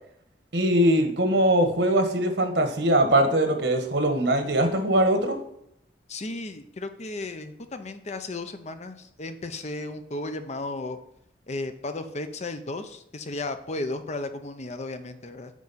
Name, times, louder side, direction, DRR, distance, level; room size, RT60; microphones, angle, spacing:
voice 1, 0.5-5.4, right 1 dB, 70° right, 6 dB, 1.4 m, -21 dB
voice 2, 6.1-11.0 11.5-15.5, left 2 dB, 40° left, 8 dB, 0.7 m, -34 dB
8.4 x 4.9 x 4.2 m, 0.76 s
head